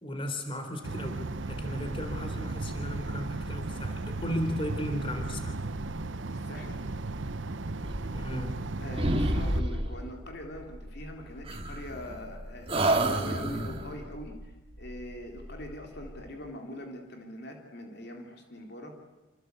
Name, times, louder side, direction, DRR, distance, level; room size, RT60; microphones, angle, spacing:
voice 1, 0.0-5.6 8.1-8.6, left 1 dB, 25° left, 6 dB, 3.8 m, -35 dB
sound 1, 0.8-9.6, right 3 dB, 65° right, 0.9 m, -36 dB
voice 2, 6.3-6.9 8.8-18.9, left 1 dB, 55° left, 2 dB, 3.4 m, -43 dB
sound 2, 7.8-8.7 9.0-10.1 11.5-12.3 12.7-13.9, right 1 dB, 30° right, 2.3 m, -29 dB
sound 3, 11.2-16.4, equal, 70° left, 5.8 m, -47 dB
27.0 x 26.0 x 8.3 m, 1.1 s
head